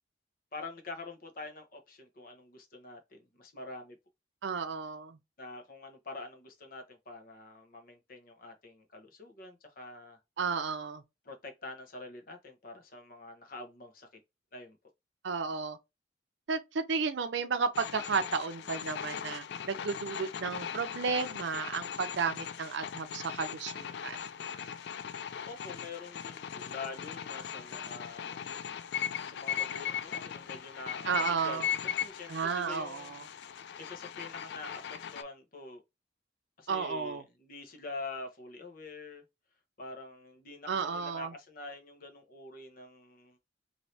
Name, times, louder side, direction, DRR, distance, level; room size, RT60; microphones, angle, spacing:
voice 1, 0.5-4.0 5.4-10.2 11.2-14.1 14.5-14.8 25.4-28.5 29.2-33.1 33.8-35.8 36.6-39.2 39.8-43.4, left 3 dB, 50° left, 0.9 m, -46 dB
voice 2, 4.4-5.2 10.4-11.0 15.2-15.8 16.5-24.2 31.0-31.7 32.3-33.3 36.7-37.2 40.7-41.3, right 5 dB, 85° right, 0.5 m, -33 dB
radio noise, 17.7-35.2, left 8 dB, 70° left, 0.3 m, -39 dB
3.2 x 2.7 x 2.7 m
head